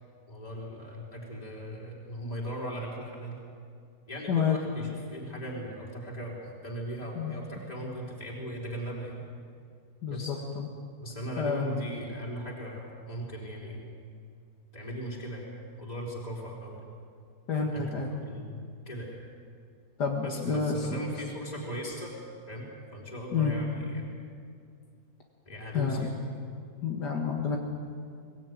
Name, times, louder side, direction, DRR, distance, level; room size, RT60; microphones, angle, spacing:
voice 1, 0.3-3.4 4.1-9.2 10.1-10.4 11.0-13.9 14.7-15.5 15.8-16.8 17.7-19.2 20.2-22.1 22.5-22.7 22.9-24.1 25.5-26.1, equal, 25° left, -4 dB, 4.1 m, -38 dB
voice 2, 10.0-10.7 11.4-11.8 17.5-18.1 20.0-20.9 23.3-23.6 25.7-26.1 26.8-27.6, left 6 dB, 80° left, 1 dB, 2.4 m, -29 dB
23.5 x 17.5 x 9.4 m, 2.3 s
omnidirectional pair, 1.8 m